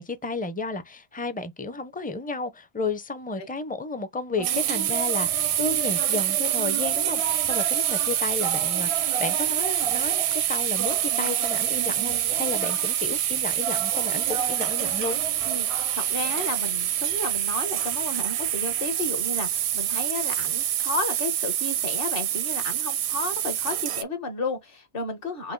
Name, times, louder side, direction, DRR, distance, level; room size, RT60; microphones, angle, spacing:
voice 1, 0.0-15.2, left 3 dB, 10° left, 0.4 m, -32 dB
sound 1, 4.4-20.6, right 7 dB, 45° right, 0.5 m, -37 dB
sound 2, 4.4-24.0, right 11 dB, 80° right, 0.8 m, -26 dB
voice 2, 15.4-25.5, left 3 dB, 60° left, 1.5 m, -33 dB
5.9 x 2.1 x 3.8 m
omnidirectional pair, 1.1 m